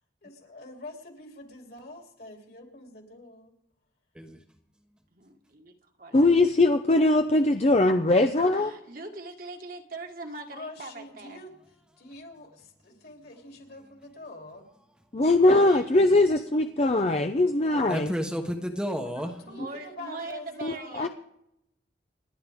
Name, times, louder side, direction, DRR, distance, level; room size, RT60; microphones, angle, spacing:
voice 1, 0.2-3.5 10.5-11.6 12.0-14.6 19.0-21.1, left 2 dB, 55° left, 3.2 m, -45 dB
voice 2, 5.1-6.4 8.5-11.4 15.7-15.9 19.5-21.1, right 3 dB, 50° right, 1.8 m, -41 dB
voice 3, 6.1-8.7 15.1-18.1 20.6-21.1, left 2 dB, 35° left, 0.6 m, -21 dB
voice 4, 17.9-19.3, equal, 5° right, 1.1 m, -31 dB
29.5 x 10.5 x 3.6 m
head